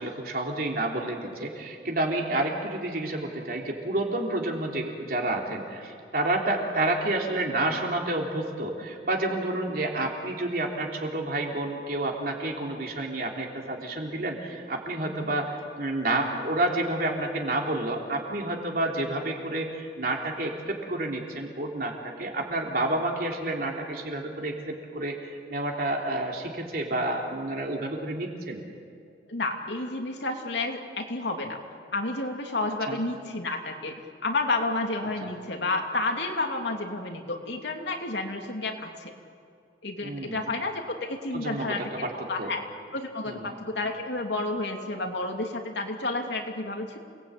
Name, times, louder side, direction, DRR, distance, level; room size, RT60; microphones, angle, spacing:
voice 1, 0.0-25.1 25.5-28.6 32.9-33.0 35.2-35.3 40.0-40.5 41.3-42.5 43.2-43.5, right 2 dB, 55° right, 0 dB, 3.6 m, -29 dB
voice 2, 29.3-31.6 31.9-34.0 34.2-39.1 39.8-42.6 42.9-47.0, left 2 dB, 75° left, 2 dB, 2.8 m, -30 dB
28.5 x 19.5 x 9.0 m, 2.3 s
head